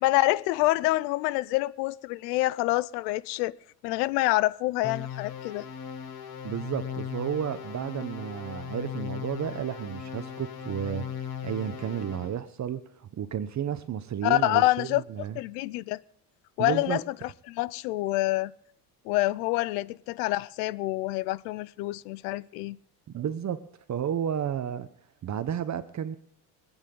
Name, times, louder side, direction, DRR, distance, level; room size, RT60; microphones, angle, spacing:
voice 1, 0.0-3.5 3.8-5.6 14.2-15.0 15.4-16.0 16.6-18.5 19.1-22.8, left 19 dB, 85° left, 0.7 m, -27 dB
sound 1, 4.8-12.4, left 8 dB, 50° left, 2.2 m, -38 dB
voice 2, 6.4-15.4 16.6-17.0 23.1-23.6 23.9-24.9 25.2-26.2, right 9 dB, 35° right, 1.0 m, -32 dB
24.0 x 9.1 x 3.8 m
supercardioid pair, 90°, 47 cm